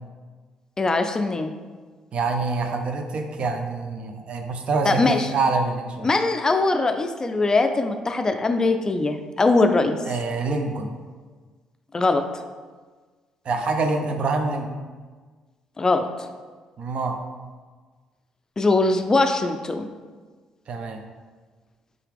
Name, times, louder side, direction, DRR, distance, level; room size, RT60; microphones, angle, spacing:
voice 1, 0.8-1.5 4.8-5.3 6.0-10.0 11.9-12.3 15.8-16.3 18.6-19.9, left 3 dB, 30° left, 7 dB, 0.3 m, -21 dB
voice 2, 2.1-6.1 10.1-10.9 13.5-14.7 16.8-17.2 20.7-21.0, right 3 dB, 55° right, 5 dB, 0.5 m, -26 dB
3.7 x 2.9 x 3.4 m, 1.4 s
supercardioid pair, 60°, 2 cm